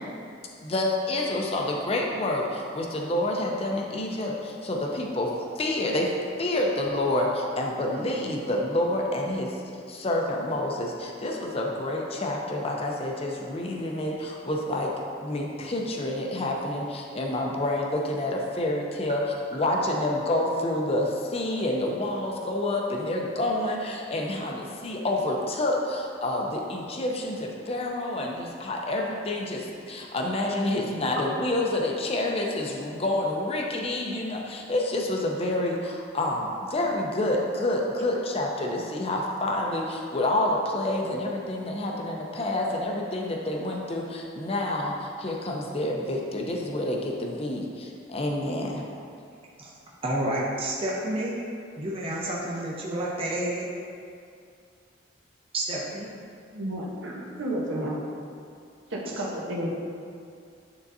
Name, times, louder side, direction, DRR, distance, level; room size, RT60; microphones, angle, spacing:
voice 1, 0.6-5.3 5.6-6.1 6.4-9.5 9.9-14.9 15.2-48.8, left 1 dB, 30° left, 0 dB, 0.6 m, -28 dB
voice 2, 50.0-51.3 51.8-53.7 55.5-56.1, right 1 dB, 30° right, -5 dB, 0.8 m, -29 dB
voice 3, 56.5-58.0 58.9-59.7, right 1 dB, 85° right, -3 dB, 1.1 m, -31 dB
9.7 x 3.8 x 2.7 m, 2.4 s
head